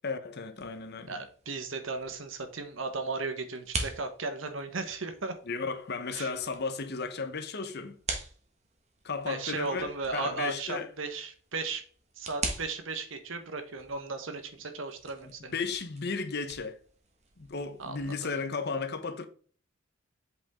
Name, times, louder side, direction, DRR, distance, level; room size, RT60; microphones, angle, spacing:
voice 1, 0.0-1.2 5.5-8.0 9.0-10.9 15.2-16.8 17.4-19.3, left 4 dB, 55° left, 0.9 m, -34 dB
sound 1, 0.5-18.1, right 3 dB, 35° right, 1.4 m, -44 dB
voice 2, 1.1-5.4 6.1-6.3 9.2-11.8 12.2-15.5 17.8-18.1, right 3 dB, 75° right, 1.2 m, -36 dB
7.9 x 5.2 x 3.7 m
head